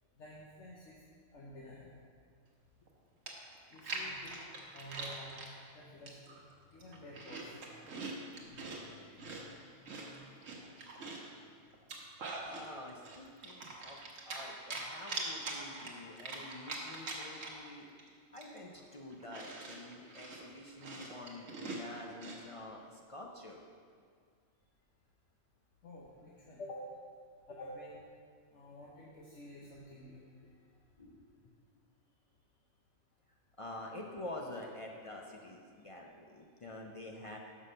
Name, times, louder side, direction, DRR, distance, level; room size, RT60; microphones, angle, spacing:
voice 1, 0.2-1.0 1.3-1.9 3.7-4.4 4.7-5.5 5.7-6.4 6.7-10.2 25.8-26.9 27.5-28.0 28.5-30.2, left 1 dB, 65° left, -4 dB, 1.2 m, -51 dB
Chewing mastication, 2.9-3.0 3.3-5.5 6.1-6.4 6.8-8.8 9.2-11.3 11.7-12.7 13.0-14.4 14.7-17.7 18.0-18.1 18.4-22.4, right 3 dB, 80° right, 1.4 m, -43 dB
voice 2, 12.5-14.0 14.3-17.9 18.3-23.6 29.6-30.0 31.0-31.4 33.6-37.4, left 1 dB, 45° left, -1 dB, 0.4 m, -48 dB
6.1 x 5.4 x 6.4 m, 2.1 s
omnidirectional pair, 1.3 m